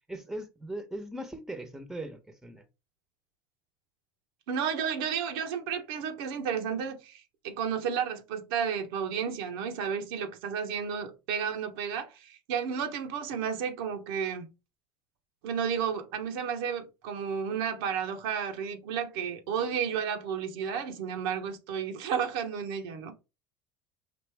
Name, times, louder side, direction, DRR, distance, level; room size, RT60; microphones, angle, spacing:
voice 1, 0.1-2.6, right 1 dB, 5° right, 1.0 m, -39 dB
voice 2, 4.5-14.5 15.4-23.1, right 7 dB, 80° right, 1.0 m, -32 dB
5.0 x 2.6 x 3.4 m
hypercardioid pair, 85°, 12 cm